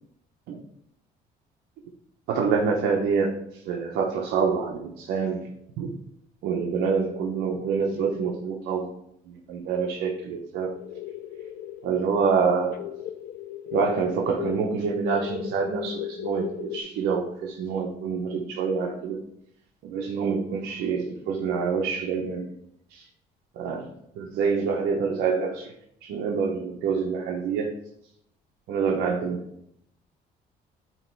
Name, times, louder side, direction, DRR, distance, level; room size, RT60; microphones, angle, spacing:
voice 1, 2.3-5.5 5.8-6.0 6.4-8.9 9.3-10.7 11.8-12.8 13.7-19.2 19.8-22.5 22.9-23.1 23.5-23.9 24.2-25.7 26.0-27.8 28.7-29.4, right 5 dB, 85° right, 0 dB, 1.0 m, -26 dB
sound 1, 10.7-16.8, left 12 dB, 60° left, 0.5 m, -36 dB
8.9 x 3.1 x 4.6 m, 0.74 s
cardioid pair, 110°, 17 cm